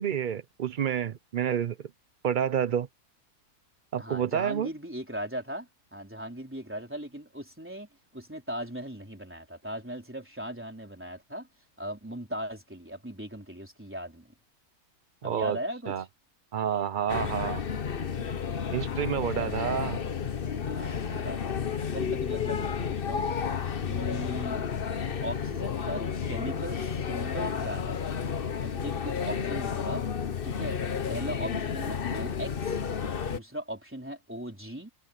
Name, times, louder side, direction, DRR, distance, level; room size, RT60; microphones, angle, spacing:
voice 1, 0.0-1.8 2.2-2.9 3.9-4.7 15.2-15.6 15.9-16.0 16.5-17.6 18.7-20.0, right 8 dB, 80° right, 0.4 m, -29 dB
voice 2, 4.0-11.5 11.8-14.3 15.2-16.1 17.1-17.6 19.4-20.0 20.7-21.6 21.9-23.3 23.9-24.7 25.2-28.0 28.6-30.1 30.4-30.8 31.1-32.8 33.2-34.9, right 1 dB, 5° right, 3.9 m, -38 dB
sound 1, 17.1-33.4, left 7 dB, 40° left, 1.0 m, -31 dB
omnidirectional pair, 1.7 m